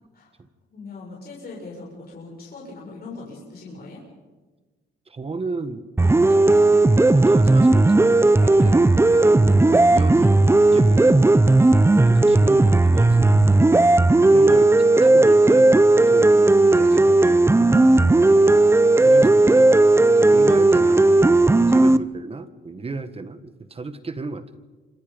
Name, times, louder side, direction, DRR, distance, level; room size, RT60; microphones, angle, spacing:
voice 1, 0.7-4.0 8.3-8.6 9.9-10.3 10.8-11.1 12.0-12.3 14.0-14.7 15.9-16.2 18.0-18.3 21.5-21.8, left 3 dB, 50° left, -3 dB, 7.5 m, -41 dB
voice 2, 5.1-5.9 6.2-6.6 7.1-10.4 10.7-11.5 11.9-13.7 14.3-17.7 19.0-19.7 20.2-24.4, right 3 dB, 30° right, 10 dB, 1.7 m, -34 dB
sound 1, 6.0-22.0, right 2 dB, 10° right, 0.8 m, -15 dB
29.0 x 26.5 x 5.3 m, 1.3 s
cardioid pair, 90°, 20 cm